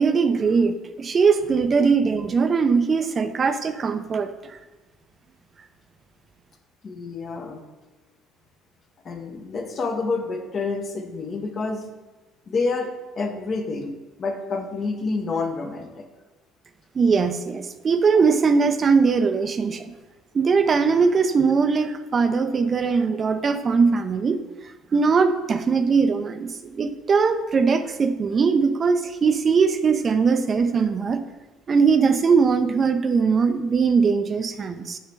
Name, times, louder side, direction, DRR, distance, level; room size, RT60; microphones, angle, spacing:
voice 1, 0.0-4.6 16.9-19.9 20.3-24.4 24.9-31.2 31.7-35.0, right 5 dB, 40° right, 9 dB, 0.5 m, -20 dB
voice 2, 6.8-7.6 9.0-11.9 12.5-16.0, left 3 dB, 45° left, 4 dB, 0.9 m, -28 dB
6.6 x 3.2 x 4.6 m, 1.2 s
hypercardioid pair, 60°, 0 cm